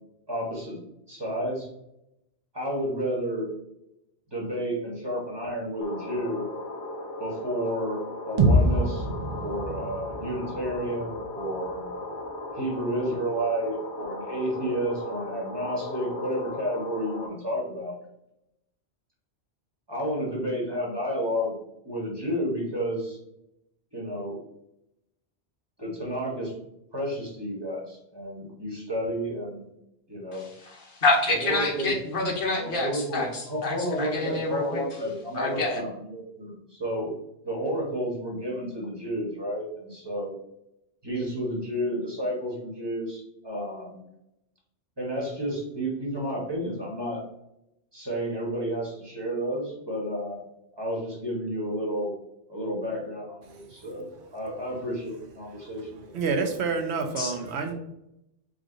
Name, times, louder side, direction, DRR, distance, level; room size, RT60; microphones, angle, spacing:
voice 1, 0.3-0.8 1.1-1.7 2.5-3.5 4.3-6.5 7.2-8.0 8.3-9.1 9.4-11.9 12.5-17.9 19.9-21.5 21.8-23.2 23.9-24.4 25.8-26.5 26.9-29.7 30.1-30.5 31.3-31.9 32.6-37.1 37.4-40.3 41.0-44.0 45.0-47.2 47.9-50.4 50.7-52.1 52.5-56.2, equal, 20° right, -4 dB, 1.3 m, -31 dB
sound 1, 5.8-17.3, left 2 dB, 85° left, 1.1 m, -37 dB
sound 2, 8.4-12.3, right 1 dB, 45° right, 0.6 m, -26 dB
voice 2, 30.6-34.8 35.3-35.8 57.2-57.3, left 2 dB, 50° left, 0 dB, 1.2 m, -27 dB
voice 3, 56.1-57.7, right 4 dB, 70° right, 4 dB, 1.0 m, -28 dB
4.9 x 2.5 x 3.8 m, 0.83 s
omnidirectional pair, 1.2 m